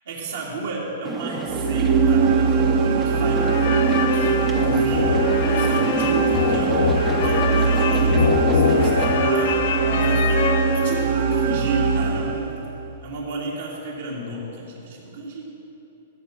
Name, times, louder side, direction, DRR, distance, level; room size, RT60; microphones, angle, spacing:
voice 1, 0.1-2.4 3.0-3.6 3.9-4.3 4.6-9.5 10.0-12.6 13.0-15.4, right 2 dB, 80° right, -5 dB, 3.0 m, -32 dB
sound 1, 1.0-9.2, right 4 dB, 15° right, 0.6 m, -31 dB
sound 2, 1.5-12.8, right 5 dB, 50° right, 0.8 m, -21 dB
sound 3, 3.4-11.2, left 7 dB, 60° left, 0.6 m, -24 dB
14.5 x 6.6 x 6.2 m, 2.9 s
hypercardioid pair, 140°, 0 cm